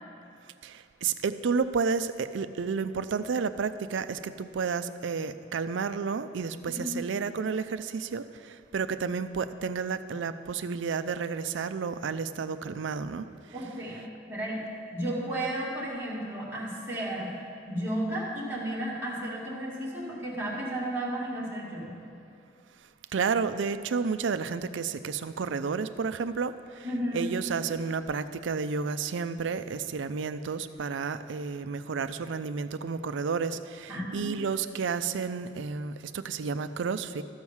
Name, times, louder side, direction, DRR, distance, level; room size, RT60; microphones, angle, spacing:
voice 1, 0.6-8.2 8.7-13.2 23.1-26.5 27.1-37.2, right 5 dB, 70° right, 12 dB, 0.4 m, -31 dB
voice 2, 6.6-7.0 13.5-14.6 14.9-17.4 17.7-22.0 26.8-27.3 33.9-34.4, right 1 dB, 10° right, -7 dB, 2.3 m, -33 dB
13.0 x 4.8 x 7.1 m, 2.5 s
head